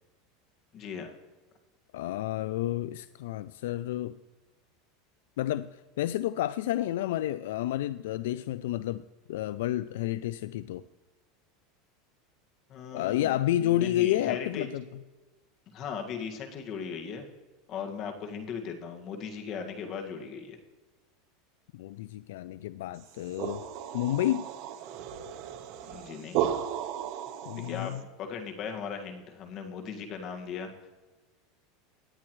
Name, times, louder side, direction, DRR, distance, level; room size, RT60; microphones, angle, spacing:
voice 1, 0.7-1.1 12.7-14.7 15.7-17.3 17.7-20.6 25.8-26.5 27.5-30.9, left 6 dB, 45° left, 4 dB, 1.7 m, -38 dB
voice 2, 1.9-4.2 5.4-10.9 12.9-14.8 21.7-23.7 23.9-24.5 27.4-28.0, left 13 dB, 80° left, 16 dB, 0.3 m, -30 dB
sound 1, 23.0-28.0, right 10 dB, 55° right, 1.0 m, -35 dB
18.0 x 9.6 x 3.1 m, 1.2 s
supercardioid pair, 135°, 0 cm